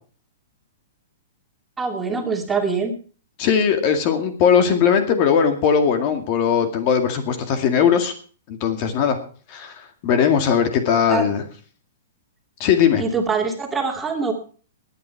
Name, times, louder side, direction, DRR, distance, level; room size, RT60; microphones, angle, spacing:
voice 1, 1.8-2.9 11.1-11.2 13.0-14.3, right 4 dB, 10° right, 2 dB, 2.5 m, -23 dB
voice 2, 3.4-8.1 8.5-9.2 9.5-11.4 12.6-13.0, left 7 dB, 40° left, 7 dB, 2.1 m, -19 dB
18.5 x 9.0 x 4.7 m, 0.41 s
hypercardioid pair, 140°, 0 cm